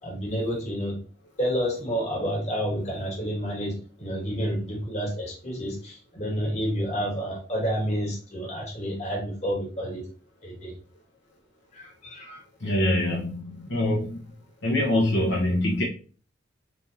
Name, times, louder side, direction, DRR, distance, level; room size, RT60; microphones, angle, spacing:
voice 1, 0.0-1.0 1.4-10.0 10.4-10.7 11.7-12.4, equal, 35° left, -3 dB, 1.9 m, -29 dB
voice 2, 12.6-14.2 14.6-15.8, left 1 dB, 65° left, -4 dB, 1.1 m, -24 dB
4.2 x 3.4 x 2.7 m, 0.39 s
head